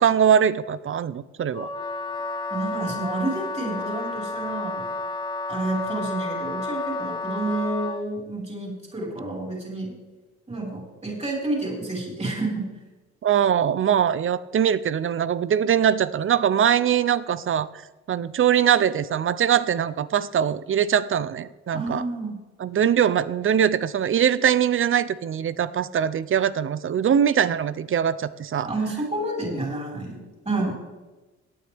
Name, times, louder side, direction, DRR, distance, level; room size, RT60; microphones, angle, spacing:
voice 1, 0.0-1.7 13.2-17.7 18.1-22.0 22.6-28.7, right 9 dB, 45° right, 17 dB, 0.6 m, -22 dB
Wind instrument woodwind instrument, 1.5-8.0, left 3 dB, 15° left, 1.2 m, -31 dB
voice 2, 2.5-4.9 5.5-9.9 10.5-12.7 21.7-22.4 28.6-30.7, right 2 dB, 20° right, -2 dB, 5.0 m, -29 dB
17.5 x 9.5 x 3.5 m, 1.1 s
cardioid pair, 90°, 30 cm